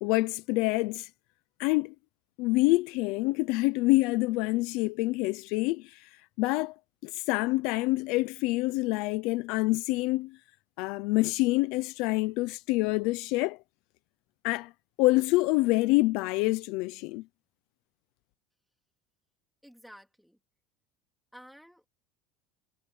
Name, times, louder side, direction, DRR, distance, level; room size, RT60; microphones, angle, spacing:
voice 1, 0.0-1.1 1.6-1.9 2.4-6.1 6.4-6.7 7.0-10.4 10.8-13.6 14.4-14.7 15.0-17.2, left 21 dB, 55° left, 0.7 m, -26 dB
voice 2, 19.6-20.4 21.3-21.9, equal, ahead, 3.5 m, -52 dB
cardioid pair, 175°, 0 cm